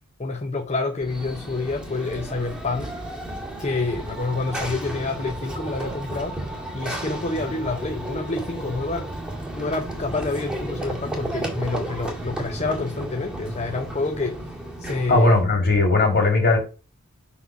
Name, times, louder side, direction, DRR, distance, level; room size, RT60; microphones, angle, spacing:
voice 1, 0.2-3.2 3.6-6.4 6.7-9.1 9.5-14.4 14.8-15.3, left 3 dB, 30° left, 0.7 m, -28 dB
Run / Train, 1.0-15.5, right 1 dB, 5° right, 2.0 m, -33 dB
voice 2, 15.1-16.6, left 2 dB, 50° left, 2.9 m, -18 dB
6.0 x 3.8 x 5.8 m
head